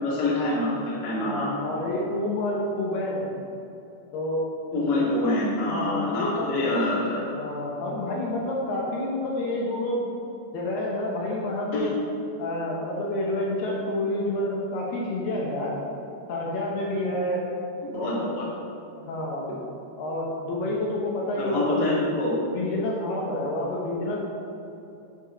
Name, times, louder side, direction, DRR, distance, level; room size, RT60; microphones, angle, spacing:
voice 1, 0.0-1.5 4.7-7.2 11.7-11.9 17.8-18.4 21.4-22.3, left 2 dB, 40° left, -7 dB, 1.6 m, -26 dB
voice 2, 1.2-3.3 4.1-4.5 5.1-5.3 5.7-6.7 7.3-10.1 10.5-11.9 12.4-15.7 16.3-17.5 17.9-18.5 19.1-19.5 20.0-22.0 22.5-24.2, left 1 dB, 70° left, -3 dB, 2.8 m, -29 dB
10.5 x 4.5 x 5.7 m, 2.8 s
omnidirectional pair, 5.2 m